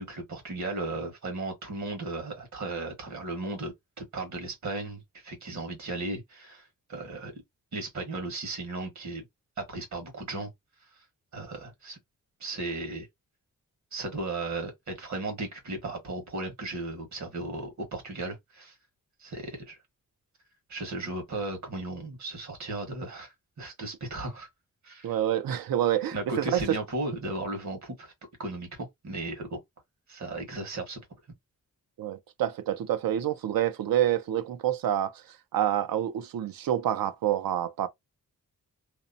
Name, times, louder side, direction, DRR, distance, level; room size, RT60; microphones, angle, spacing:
voice 1, 0.0-7.4 7.7-9.2 9.6-10.5 11.3-12.0 12.4-13.1 13.9-18.7 19.2-19.8 20.7-24.5 24.8-25.1 26.1-28.1 28.4-29.6 30.1-31.0, right 2 dB, 55° right, 1.3 m, -36 dB
voice 2, 25.0-26.8 32.0-35.1 35.5-37.9, right 11 dB, 85° right, 0.5 m, -27 dB
2.8 x 2.0 x 2.5 m
wide cardioid pair, 135°, 34 cm